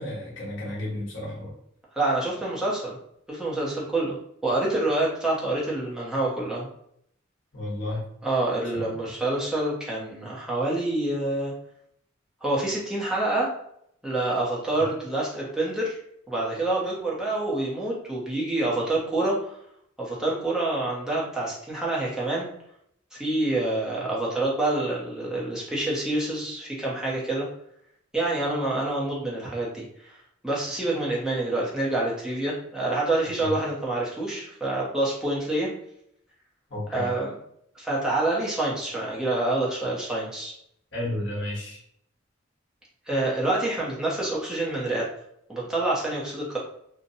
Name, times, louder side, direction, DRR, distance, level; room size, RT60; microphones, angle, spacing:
voice 1, 0.0-1.5 7.5-8.1 8.6-9.1 33.4-33.5 36.7-37.1 40.9-41.8, left 1 dB, 60° left, -6 dB, 1.0 m, -32 dB
voice 2, 2.0-3.0 3.3-6.7 8.2-11.5 12.4-13.5 14.0-16.0 16.3-19.6 20.0-22.5 23.1-27.5 28.1-30.2 30.4-35.7 36.9-37.3 37.7-40.5 43.1-45.0 45.5-46.6, right 2 dB, 5° right, -6 dB, 0.7 m, -27 dB
2.7 x 2.1 x 2.6 m, 0.71 s
head